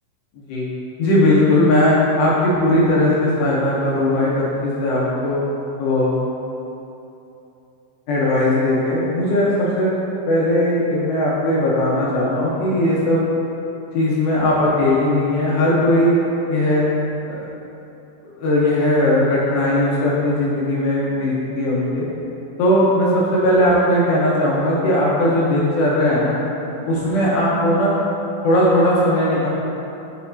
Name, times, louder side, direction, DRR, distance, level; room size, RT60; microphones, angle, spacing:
voice 1, 1.0-5.4 5.8-6.1 8.1-9.9 10.3-13.2 13.9-16.1 16.5-16.9 18.4-22.1 22.6-26.4 26.9-27.9 28.4-29.5, left 1 dB, 75° left, -6 dB, 2.7 m, -18 dB
7.2 x 6.4 x 2.7 m, 2.9 s
omnidirectional pair, 5.5 m